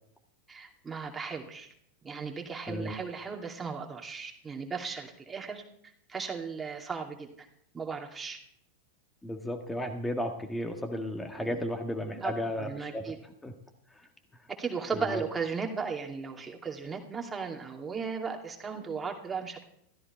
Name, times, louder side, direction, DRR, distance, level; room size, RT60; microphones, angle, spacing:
voice 1, 0.5-1.7 2.0-5.6 6.1-7.5 7.7-8.4 11.4-11.6 12.1-12.3 12.6-13.2 14.5-19.6, right 5 dB, 15° right, 2 dB, 2.5 m, -36 dB
voice 2, 9.2-13.1 13.4-13.5 14.9-15.2, left 1 dB, 5° left, 4 dB, 1.6 m, -34 dB
15.5 x 14.0 x 4.4 m, 0.69 s
figure-of-eight pair, 90°, 0 cm